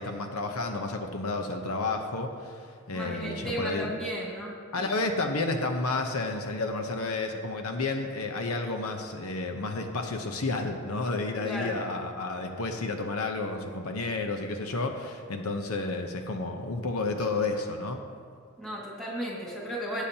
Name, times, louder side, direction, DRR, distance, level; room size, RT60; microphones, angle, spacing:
voice 1, 0.0-3.9 4.7-18.0, left 3 dB, 80° left, 4 dB, 0.9 m, -31 dB
voice 2, 2.9-4.9 11.4-11.8 18.6-20.0, equal, ahead, -5 dB, 2.0 m, -34 dB
17.5 x 8.3 x 2.9 m, 2.1 s
head